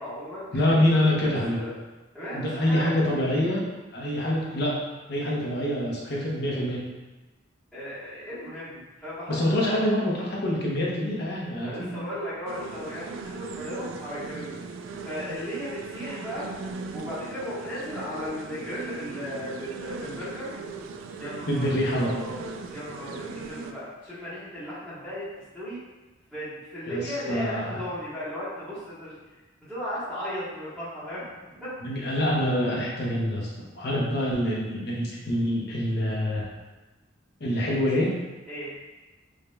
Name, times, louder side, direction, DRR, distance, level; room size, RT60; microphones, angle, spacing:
voice 1, 0.0-0.8 1.2-1.7 2.1-3.3 7.7-9.8 11.6-14.5 15.0-16.5 16.9-20.5 21.2-25.2 25.5-25.8 26.3-29.2 29.6-31.3 31.5-31.7 38.5-38.7, equal, 5° right, -18 dB, 1.5 m, -36 dB
voice 2, 0.5-1.6 2.3-3.6 3.9-4.8 5.1-6.8 9.3-11.9 21.5-22.1 26.9-27.8 31.8-33.5 33.8-36.4 37.4-38.2, left 1 dB, 55° left, -4 dB, 0.9 m, -25 dB
sound 1, 12.5-23.7, right 4 dB, 80° right, 0.3 m, -39 dB
4.9 x 2.8 x 2.2 m, 1.2 s
head